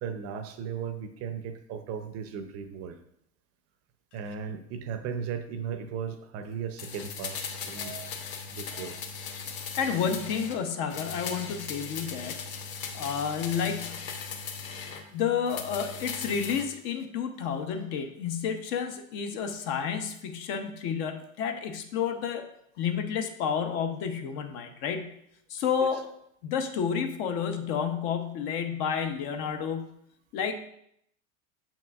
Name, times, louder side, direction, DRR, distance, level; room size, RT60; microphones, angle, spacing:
voice 1, 0.0-3.0 4.1-8.2 8.5-9.0, right 7 dB, 40° right, 9 dB, 0.6 m, -36 dB
sound 1, 6.8-10.6 10.9-15.1 15.5-16.7 17.0-17.1, left 6 dB, 80° left, 0.9 m, -38 dB
voice 2, 9.8-12.4 12.9-14.0 15.1-22.5 22.8-25.1 25.5-26.1 26.4-29.9 30.3-30.6, left 7 dB, 55° left, 7 dB, 0.8 m, -30 dB
6.9 x 5.9 x 2.4 m, 0.73 s
supercardioid pair, 115°, 40 cm